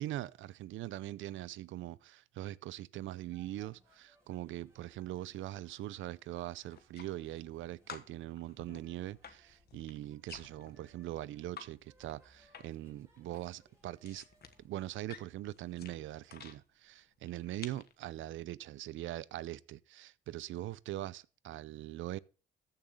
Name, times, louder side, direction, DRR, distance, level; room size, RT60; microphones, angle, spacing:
voice 1, 0.0-14.2 14.6-22.2, right 14 dB, 80° right, 0.5 m, -42 dB
sound 1, 3.3-14.9, right 1 dB, 15° right, 4.0 m, -69 dB
sound 2, 6.7-7.6 7.9-11.7 12.0-12.9 13.2-16.6 17.2-17.9, left 7 dB, 55° left, 1.4 m, -52 dB
14.0 x 6.7 x 3.7 m
cardioid pair, 90°, 20 cm